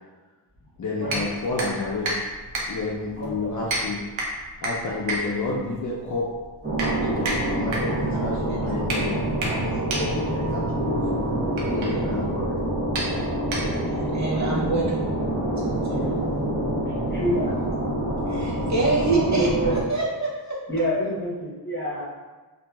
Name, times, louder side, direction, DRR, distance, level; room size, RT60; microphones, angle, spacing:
voice 1, 0.8-2.3 2.6-4.0 4.6-6.3 6.8-11.2 11.7-12.6 14.4-14.9, left 3 dB, 45° left, -5 dB, 0.4 m, -30 dB
sound 1, 1.1-14.1, right 1 dB, 85° right, 0.6 m, -33 dB
voice 2, 3.2-3.5 15.9-16.1 16.9-17.5 19.1-19.8 20.7-22.0, equal, 25° left, -7 dB, 1.0 m, -27 dB
sound 2, 6.6-19.8, right 1 dB, 25° right, 1.0 m, -26 dB
voice 3, 11.6-12.1 13.5-14.8 15.6-16.1 17.1-17.2 18.3-20.6, right 3 dB, 40° right, -5 dB, 0.6 m, -27 dB
2.8 x 2.4 x 2.2 m, 1.3 s
wide cardioid pair, 75°, 45 cm